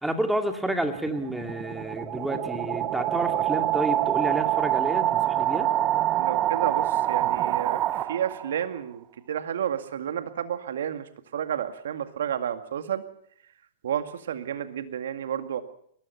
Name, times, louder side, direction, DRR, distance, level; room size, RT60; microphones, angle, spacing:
voice 1, 0.0-5.7, right 1 dB, 5° right, 5 dB, 2.5 m, -30 dB
sound 1, 0.8-8.6, right 13 dB, 30° right, 1.1 m, -26 dB
voice 2, 6.2-13.1 13.8-15.6, right 9 dB, 65° right, 9 dB, 2.0 m, -31 dB
22.5 x 19.5 x 5.9 m, 0.68 s
hypercardioid pair, 110°, 0 cm